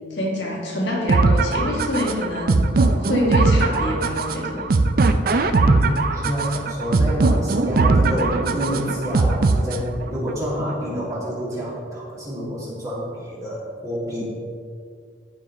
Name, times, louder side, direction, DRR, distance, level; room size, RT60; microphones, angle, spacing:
voice 1, 0.1-2.7 3.0-4.6, left 1 dB, 70° left, -2 dB, 1.5 m, -25 dB
sound 1, 1.1-10.1, right 3 dB, 50° right, 0.4 m, -20 dB
voice 2, 5.6-14.2, equal, 20° right, -7 dB, 2.2 m, -28 dB
13.5 x 5.0 x 3.0 m, 2.2 s
head